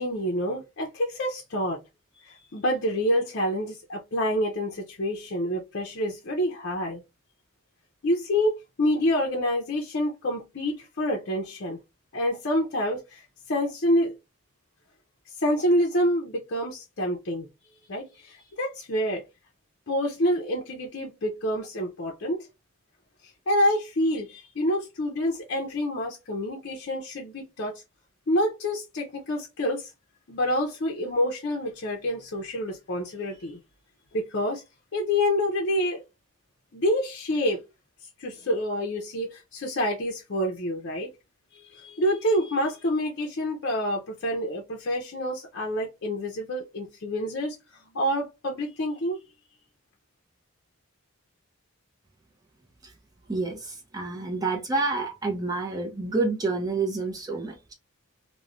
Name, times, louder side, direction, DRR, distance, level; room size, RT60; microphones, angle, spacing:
voice 1, 0.0-1.8 2.1-7.0 8.0-8.5 8.8-11.8 12.1-13.2 13.5-14.2 15.4-17.5 17.9-19.2 19.9-22.5 23.5-27.7 28.3-29.9 30.3-33.6 34.1-34.6 34.9-36.0 36.7-37.6 38.2-41.1 41.7-47.6 47.9-49.2, equal, 55° left, 0.5 m, -27 dB
voice 2, 53.3-57.7, right 3 dB, 15° right, 0.6 m, -28 dB
3.0 x 2.1 x 2.4 m
head